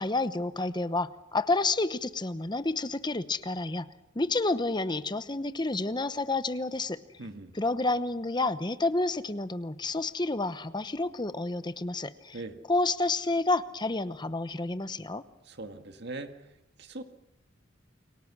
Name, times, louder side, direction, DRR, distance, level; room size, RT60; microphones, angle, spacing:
voice 1, 0.0-3.9 4.1-7.0 7.5-12.4 12.7-15.2, left 2 dB, 20° left, 12 dB, 0.9 m, -29 dB
voice 2, 7.2-7.5 12.3-12.6 15.5-16.3 16.8-17.0, right 2 dB, 55° right, 6 dB, 1.9 m, -40 dB
29.5 x 23.0 x 6.2 m, 0.90 s
head